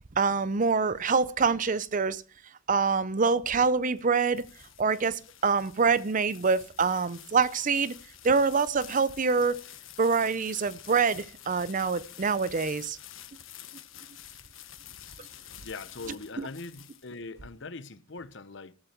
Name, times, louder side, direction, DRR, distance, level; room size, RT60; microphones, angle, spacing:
voice 1, 0.2-2.2 2.7-4.5 4.8-7.9 8.2-9.6 10.0-13.0 16.4-16.5, right 5 dB, 40° right, 0.6 m, -25 dB
sound 1, 3.8-17.4, left 11 dB, 75° left, 1.5 m, -49 dB
voice 2, 15.6-18.7, left 3 dB, 60° left, 1.0 m, -41 dB
14.0 x 12.5 x 4.5 m
head